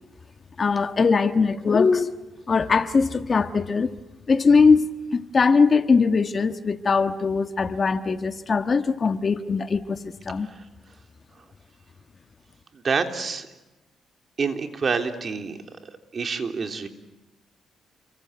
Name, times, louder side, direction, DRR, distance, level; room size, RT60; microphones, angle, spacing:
voice 1, 0.6-2.2 2.5-3.9 4.3-10.0 10.3-10.5, left 4 dB, 40° left, 1.4 m, -21 dB
voice 2, 12.7-13.5 14.4-15.6 15.8-16.9, right 5 dB, 40° right, 3.2 m, -28 dB
29.5 x 24.5 x 8.1 m
cardioid pair, 95°, 0 cm